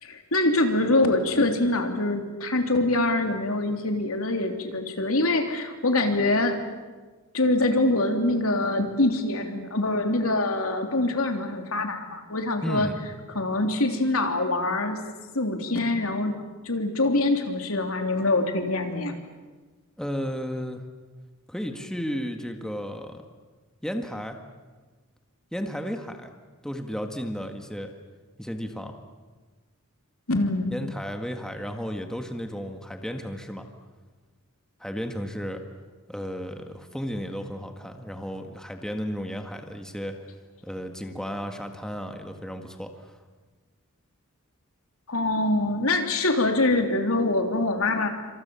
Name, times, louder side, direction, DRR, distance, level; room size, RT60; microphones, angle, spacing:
voice 1, 0.0-6.6 7.3-12.9 13.3-15.0 15.3-16.3 16.6-19.2 30.3-30.8 45.1-48.1, left 2 dB, 75° left, 4 dB, 3.2 m, -24 dB
voice 2, 12.6-13.0 20.0-20.8 21.5-23.2 23.8-24.4 25.5-26.3 26.6-27.9 28.4-28.9 30.7-33.7 34.8-35.6 36.1-40.2 40.6-42.9, equal, 5° left, 5 dB, 1.8 m, -33 dB
28.0 x 26.5 x 7.1 m, 1.3 s
head